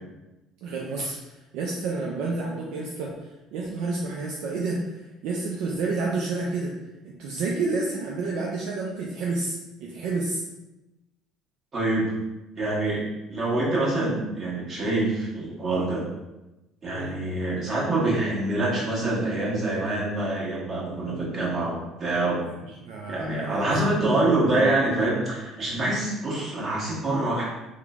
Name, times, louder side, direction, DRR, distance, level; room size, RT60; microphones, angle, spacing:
voice 1, 0.6-6.7 7.0-10.4 16.9-17.2 22.4-24.1, right 3 dB, 70° right, -3 dB, 0.3 m, -30 dB
voice 2, 11.7-12.1 12.6-13.0 13.3-16.0 16.8-22.4 23.1-27.4, right 2 dB, 40° right, -6 dB, 1.2 m, -25 dB
3.0 x 2.1 x 2.3 m, 1.0 s
hypercardioid pair, 65°, 0 cm